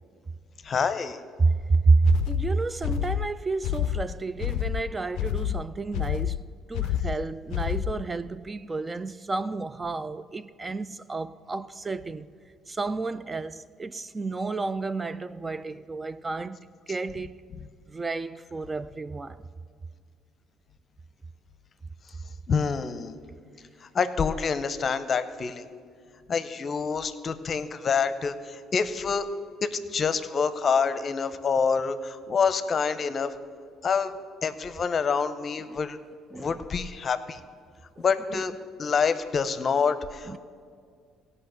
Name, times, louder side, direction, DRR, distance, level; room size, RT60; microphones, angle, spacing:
voice 1, 0.6-1.2 22.5-23.2 23.9-25.6 26.3-29.2 29.6-33.3 33.8-34.1 34.4-36.0 36.4-37.4 38.0-38.5 38.8-40.4, left 6 dB, 45° left, 0.7 m, -27 dB
voice 2, 1.4-6.4 6.7-12.3 12.7-16.6 16.9-17.3 17.9-19.4 36.3-36.6 38.0-38.4 40.3-40.4, right 3 dB, 25° right, 0.3 m, -29 dB
sound 1, 2.0-8.1, left 11 dB, 75° left, 0.3 m, -29 dB
16.5 x 5.6 x 6.8 m
supercardioid pair, 75°, 0 cm